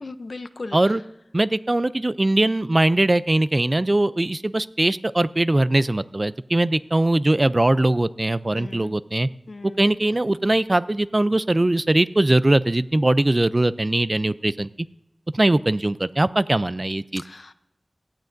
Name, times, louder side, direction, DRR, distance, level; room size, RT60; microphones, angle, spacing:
voice 1, 0.0-0.8 8.5-8.9 9.5-9.8 17.3-17.5, left 3 dB, 70° left, 11 dB, 0.6 m, -37 dB
voice 2, 1.3-9.3 9.6-14.7 15.3-17.2, right 1 dB, 40° right, 15 dB, 0.4 m, -21 dB
17.5 x 12.0 x 2.6 m, 0.86 s
wide cardioid pair, 50°, 0 cm